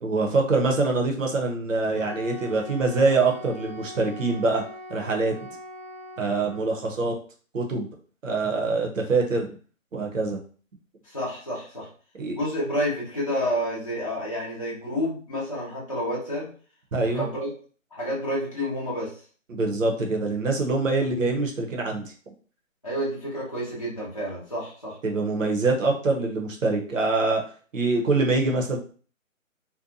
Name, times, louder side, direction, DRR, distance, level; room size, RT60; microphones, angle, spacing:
voice 1, 0.0-4.6 4.9-5.3 6.2-7.1 7.5-7.9 8.2-9.5 9.9-10.4 12.2-12.4 16.9-17.3 19.5-22.1 25.0-27.4 27.7-28.8, right 3 dB, 65° right, 1 dB, 0.8 m, -24 dB
Wind instrument woodwind instrument, 1.9-6.8, left 1 dB, 70° left, 0.8 m, -41 dB
voice 2, 11.0-11.9 12.3-16.5 17.1-17.5 17.9-19.1 22.8-25.0, equal, 25° left, -9 dB, 0.6 m, -29 dB
2.6 x 2.2 x 2.5 m, 0.42 s
hypercardioid pair, 170°, 41 cm